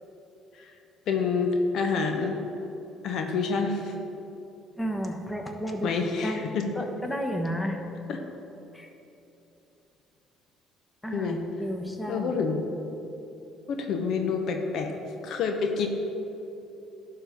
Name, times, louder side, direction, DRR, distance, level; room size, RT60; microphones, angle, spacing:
voice 1, 1.1-2.4 3.0-3.9 5.8-6.9 8.1-8.2 11.1-11.4 12.1-12.7 13.7-14.9 15.2-15.9, left 5 dB, 65° left, 4 dB, 0.8 m, -28 dB
voice 2, 4.8-6.4 6.7-7.9 8.7-8.9 11.0-12.4, equal, 15° left, 3 dB, 1.2 m, -32 dB
11.0 x 3.8 x 6.9 m, 3.0 s
hypercardioid pair, 60°, 0 cm